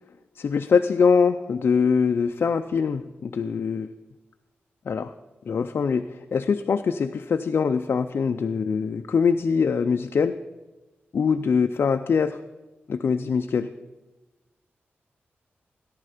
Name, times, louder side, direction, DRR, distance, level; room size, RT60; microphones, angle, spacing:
voice 1, 0.4-3.9 4.9-5.1 5.5-10.4 11.1-12.4 12.9-13.7, left 5 dB, 60° left, 7 dB, 0.5 m, -23 dB
18.0 x 10.5 x 5.0 m, 1.2 s
wide cardioid pair, 105°, 4 cm